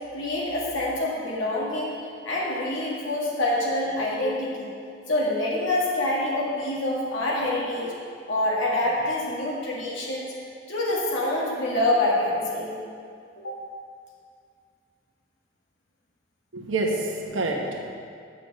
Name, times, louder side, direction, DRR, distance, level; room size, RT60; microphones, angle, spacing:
voice 1, 0.1-1.9 2.2-4.7 5.1-7.9 8.3-10.3 10.7-12.8 13.4-13.5, left 1 dB, 80° left, -4 dB, 1.7 m, -26 dB
voice 2, 16.5-17.9, right 2 dB, 85° right, 0 dB, 1.1 m, -27 dB
6.5 x 6.5 x 7.5 m, 2.3 s
head